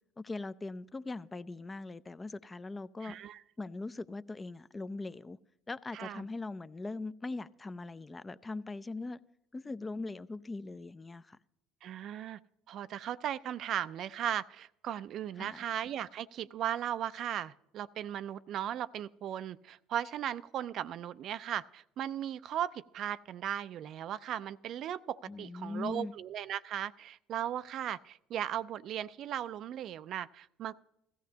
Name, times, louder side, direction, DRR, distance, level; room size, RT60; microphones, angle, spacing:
voice 1, 0.2-3.2 3.6-5.4 5.7-9.2 9.5-11.4 15.4-15.6 25.3-26.1, left 3 dB, 20° left, 0.5 m, -41 dB
voice 2, 3.0-3.4 5.9-6.3 11.8-12.4 12.7-30.8, right 10 dB, 55° right, 0.4 m, -37 dB
16.5 x 14.0 x 2.8 m
hypercardioid pair, 65°, 0 cm